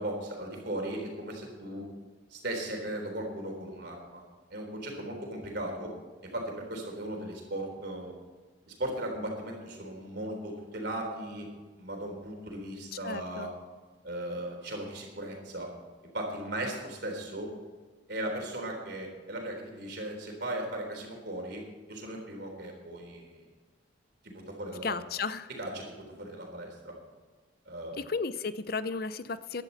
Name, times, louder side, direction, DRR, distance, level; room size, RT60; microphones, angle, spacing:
voice 1, 0.0-1.9 2.3-4.2 4.5-5.9 6.3-8.1 8.7-11.5 11.8-13.5 14.0-15.7 16.1-17.5 18.1-21.6 21.9-23.4 24.2-25.0 25.5-26.9 27.7-28.0, right 1 dB, 55° right, 1 dB, 3.8 m, -37 dB
voice 2, 13.0-13.5 24.8-25.5 28.0-29.6, left 4 dB, 50° left, 13 dB, 0.6 m, -34 dB
15.5 x 11.5 x 4.2 m, 1.4 s
head